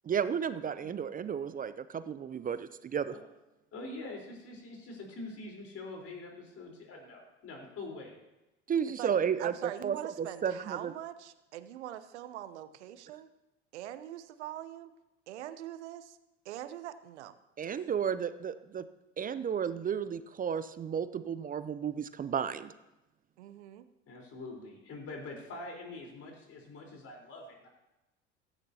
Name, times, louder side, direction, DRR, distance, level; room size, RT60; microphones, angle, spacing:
voice 1, 0.0-3.1 8.7-9.5 9.8-10.9 17.6-18.9 19.2-22.7, right 7 dB, 25° right, 13 dB, 0.6 m, -33 dB
voice 2, 3.7-8.2 24.1-27.7, left 2 dB, 40° left, 0 dB, 4.1 m, -44 dB
voice 3, 9.4-13.3 13.7-14.9 15.3-16.2 16.4-17.3 23.4-23.9, right 12 dB, 75° right, 13 dB, 0.9 m, -43 dB
15.5 x 13.0 x 2.9 m, 0.96 s
hypercardioid pair, 75°, 35 cm